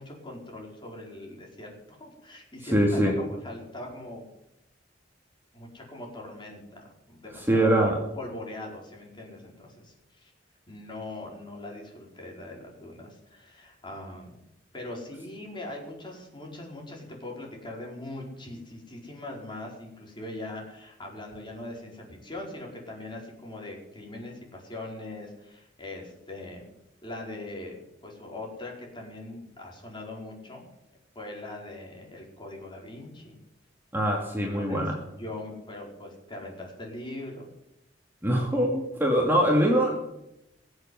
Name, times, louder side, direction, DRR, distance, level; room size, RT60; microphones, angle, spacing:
voice 1, 0.0-4.3 5.5-10.3 10.7-14.4 14.7-26.7 27.0-30.6 31.1-33.4 34.4-37.5, left 2 dB, 25° left, -1 dB, 4.8 m, -41 dB
voice 2, 2.7-3.1 7.5-8.0 33.9-35.0 38.2-40.0, right 1 dB, 10° right, -1 dB, 2.6 m, -23 dB
21.5 x 8.1 x 7.8 m, 0.85 s
head